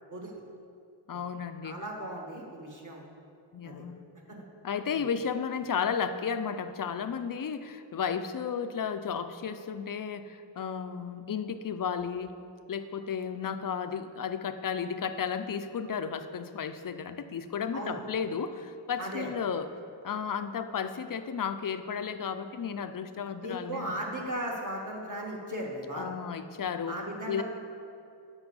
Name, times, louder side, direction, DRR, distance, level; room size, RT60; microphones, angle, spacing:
voice 1, 1.1-1.8 3.5-4.0 4.6-12.3 12.7-19.7 20.0-24.3 26.0-27.0 27.3-27.4, left 7 dB, 45° left, 9 dB, 0.5 m, -33 dB
voice 2, 1.6-3.1 3.6-3.8 4.3-4.4 5.0-5.1 17.7-18.0 19.0-19.3 23.4-26.1 26.9-27.4, right 1 dB, 40° right, -2 dB, 1.6 m, -37 dB
8.0 x 5.6 x 7.0 m, 2.5 s
wide cardioid pair, 105°, 47 cm